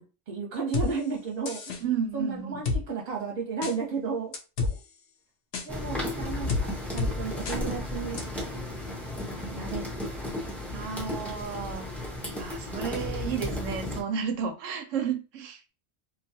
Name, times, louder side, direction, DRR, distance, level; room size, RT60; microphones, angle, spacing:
voice 1, 0.0-1.8 2.1-4.3 5.6-8.2 9.5-10.0 14.2-14.4, right 5 dB, 40° right, 0.9 m, -33 dB
sound 1, 0.7-0.9 1.5-1.8 2.7-2.8 3.6-3.7 4.3-4.7 5.5-5.7 6.5-6.6 7.0-7.1 7.5-7.6 8.2-8.3, left 3 dB, 70° left, 0.9 m, -28 dB
voice 2, 1.8-2.6 10.7-11.9 12.4-15.6, right 7 dB, 85° right, 0.9 m, -32 dB
sound 2, 5.7-14.0, left 1 dB, ahead, 0.6 m, -34 dB
2.7 x 2.3 x 2.7 m
omnidirectional pair, 1.3 m